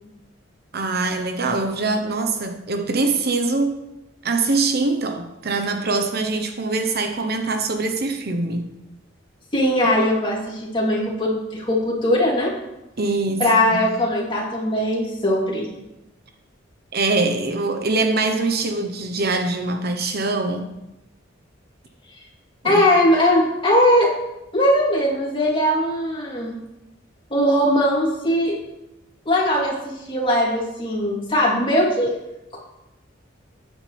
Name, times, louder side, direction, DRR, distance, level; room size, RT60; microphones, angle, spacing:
voice 1, 0.7-3.8 4.2-8.7 9.8-9.9 13.0-13.8 16.9-20.7 22.6-22.8, right 3 dB, 55° right, 5 dB, 1.0 m, -23 dB
voice 2, 9.5-12.5 13.4-15.7 22.6-24.1 24.5-26.6 27.3-28.6 29.2-32.1, left 1 dB, 25° left, -4 dB, 3.3 m, -20 dB
13.0 x 9.8 x 3.4 m, 0.93 s
head